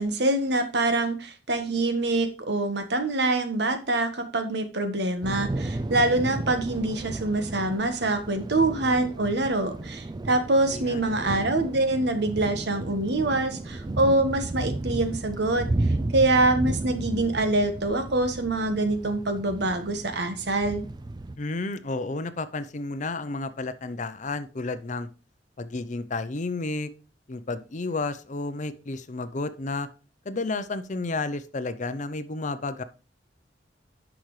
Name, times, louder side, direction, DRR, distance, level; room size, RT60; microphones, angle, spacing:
voice 1, 0.0-15.7 16.1-20.8, right 2 dB, 65° right, 8 dB, 1.4 m, -25 dB
Thunder / Rain, 5.2-21.4, right 2 dB, 25° right, 0.4 m, -33 dB
voice 2, 10.7-11.4 21.4-25.1 25.6-26.9 27.3-29.9 30.3-32.8, left 3 dB, 40° left, 12 dB, 0.6 m, -31 dB
10.5 x 6.0 x 3.2 m, 0.34 s
head